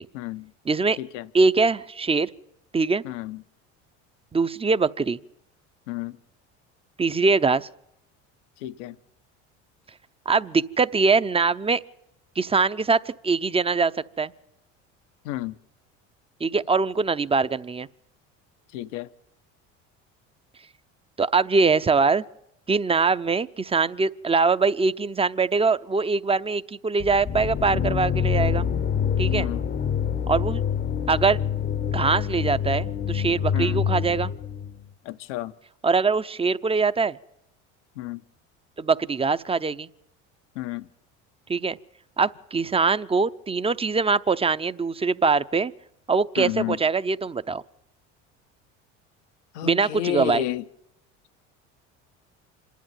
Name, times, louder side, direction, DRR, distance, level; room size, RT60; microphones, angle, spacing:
voice 1, 0.1-0.5 1.0-1.3 3.0-3.4 5.9-6.2 8.6-8.9 15.2-15.5 18.7-19.1 29.3-29.6 33.5-33.8 35.0-35.5 38.0-38.2 40.6-40.9 46.4-46.8 49.5-50.6, left 14 dB, 85° left, 0.9 m, -31 dB
voice 2, 0.6-1.0 1.3-2.3 2.7-3.0 4.3-5.2 7.0-7.7 10.3-11.8 12.4-13.9 14.2-14.3 16.4-17.9 21.2-22.2 22.7-28.7 29.2-29.5 30.3-30.6 31.1-31.4 31.9-34.3 35.8-37.2 38.8-39.9 41.5-41.8 42.2-45.7 46.1-47.6 49.6-50.4, right 4 dB, 15° right, 0.7 m, -22 dB
sound 1, 27.0-34.8, left 8 dB, 30° left, 0.8 m, -26 dB
26.5 x 11.5 x 9.2 m
supercardioid pair, 85°, 35 cm